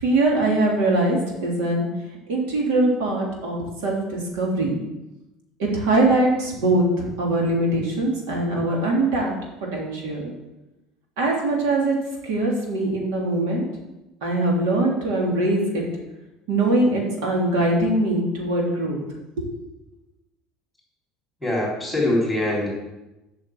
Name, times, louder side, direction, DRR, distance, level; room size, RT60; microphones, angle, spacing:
voice 1, 0.0-1.9 2.3-4.8 5.6-9.3 9.7-10.3 11.2-11.9 12.3-13.6 14.2-15.8 16.5-19.0 19.4-19.5, right 2 dB, 85° right, -2 dB, 3.2 m, -22 dB
voice 2, 21.4-22.7, left 1 dB, ahead, -4 dB, 3.6 m, -23 dB
8.1 x 6.2 x 7.7 m, 0.99 s
cardioid pair, 170°, 0 cm